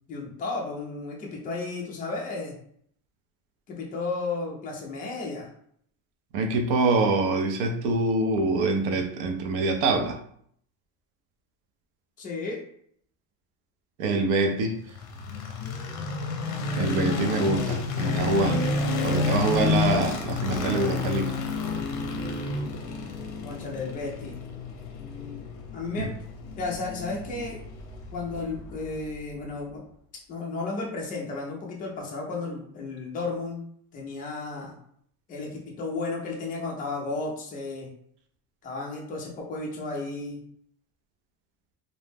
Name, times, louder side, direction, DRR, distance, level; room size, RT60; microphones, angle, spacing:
voice 1, 0.1-2.6 3.7-5.5 12.2-12.6 23.4-24.4 24.7-25.5 25.7-26.1 26.6-27.6 28.1-29.8 30.3-33.6 33.9-34.7 35.3-37.9 38.6-40.4, left 3 dB, 20° left, -2 dB, 0.3 m, -33 dB
voice 2, 6.3-10.2 14.0-14.8 16.8-18.7 19.0-21.3 26.0-26.1, right 3 dB, 60° right, 4 dB, 0.6 m, -25 dB
sound 1, 14.9-29.0, left 4 dB, 50° left, 0.6 m, -30 dB
2.6 x 2.0 x 3.3 m, 0.64 s
cardioid pair, 165°, 44 cm